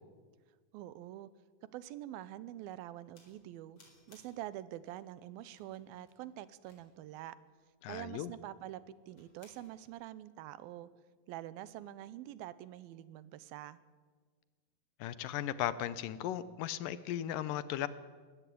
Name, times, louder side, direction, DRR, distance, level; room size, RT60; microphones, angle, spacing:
voice 1, 0.7-1.3 1.6-3.8 4.1-7.4 7.9-10.9 11.3-13.8, right 13 dB, 90° right, 17 dB, 2.6 m, -46 dB
sound 1, 3.2-3.4 3.8-4.5 4.9-5.0 5.5-7.1 9.1-9.9, left 3 dB, 40° left, 5.1 m, -65 dB
voice 2, 7.8-8.3 15.0-17.9, left 12 dB, 75° left, 15 dB, 2.3 m, -36 dB
20.5 x 16.5 x 8.5 m, 1.5 s
omnidirectional pair, 4.1 m